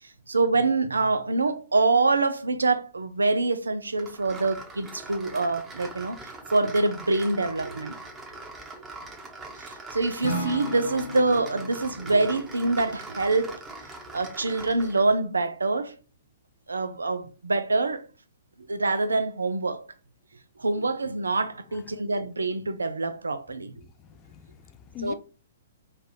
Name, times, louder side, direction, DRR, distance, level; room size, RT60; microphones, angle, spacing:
voice 1, 0.3-6.2 6.5-8.0 9.6-13.6 14.1-16.0 16.7-18.1 18.7-19.8 20.6-23.7 25.0-25.1, right 3 dB, 80° right, 0.4 m, -25 dB
sound 1, 4.0-15.1, right 3 dB, 15° right, 0.9 m, -42 dB
Acoustic guitar / Strum, 10.2-14.3, left 2 dB, 60° left, 1.0 m, -36 dB
voice 2, 21.7-22.0 23.7-25.1, left 11 dB, 30° left, 0.4 m, -44 dB
3.2 x 2.4 x 4.1 m
figure-of-eight pair, 120°, 0 cm